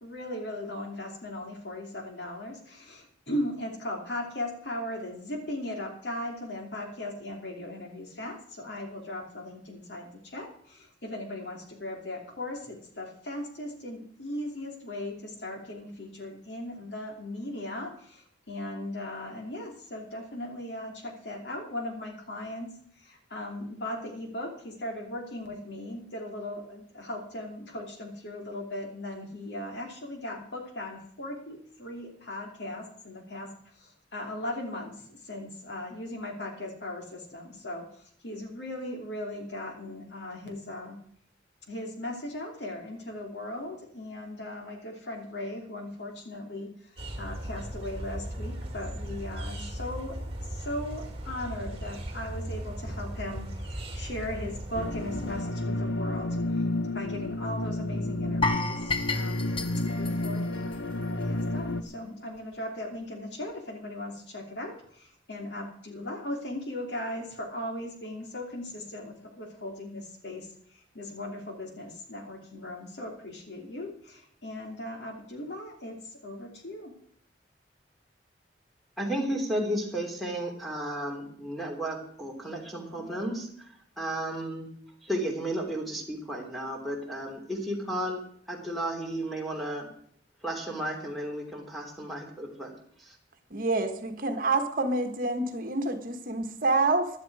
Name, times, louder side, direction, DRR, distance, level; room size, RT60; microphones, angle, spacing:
voice 1, 0.0-41.0 41.7-46.9 47.2-50.2 50.4-56.6 56.9-76.9 82.9-83.4, left 1 dB, 65° left, 2 dB, 3.0 m, -38 dB
sound 1, 47.0-55.4, right 1 dB, 30° right, 2.4 m, -37 dB
sound 2, 54.7-61.8, left 1 dB, 85° left, 1.0 m, -31 dB
sound 3, 58.4-61.4 61.7-61.9 62.3-62.4, left 3 dB, 30° left, 0.9 m, -32 dB
voice 2, 79.0-83.5 84.0-84.7 85.1-88.2 88.5-89.9 90.4-92.7, right 1 dB, ahead, 0 dB, 3.0 m, -33 dB
voice 3, 93.5-97.1, right 3 dB, 50° right, 7 dB, 1.4 m, -27 dB
15.5 x 11.0 x 4.8 m, 0.63 s
head